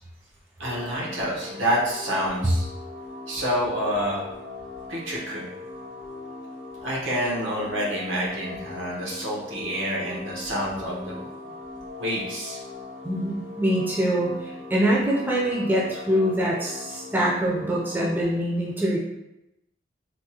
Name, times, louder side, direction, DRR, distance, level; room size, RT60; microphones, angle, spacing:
sound 1, 0.6-18.2, left 3 dB, 65° left, 0.8 m, -40 dB
voice 1, 0.6-2.7 3.3-4.3 4.9-5.5 6.8-11.3 12.0-12.6, equal, 80° right, -4 dB, 1.0 m, -28 dB
voice 2, 13.0-19.0, right 1 dB, 10° right, -5 dB, 0.5 m, -24 dB
3.5 x 2.2 x 2.8 m, 0.91 s
head